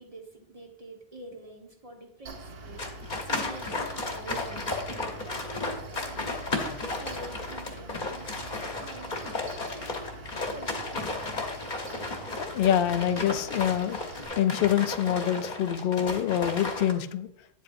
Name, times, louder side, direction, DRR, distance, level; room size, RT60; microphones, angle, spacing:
voice 1, 0.0-2.9 3.2-4.7 5.2-6.4 6.6-10.1 10.5-11.3, right 2 dB, 35° right, 1 dB, 1.3 m, -46 dB
Mechanical fan, 2.3-14.3, right 2 dB, 70° right, 1.0 m, -44 dB
sound 1, 2.8-16.9, left 3 dB, 50° left, 1.1 m, -34 dB
voice 2, 12.4-14.0 14.4-17.3, left 10 dB, 65° left, 11 dB, 0.7 m, -25 dB
8.8 x 7.7 x 2.5 m, 0.75 s
omnidirectional pair, 1.1 m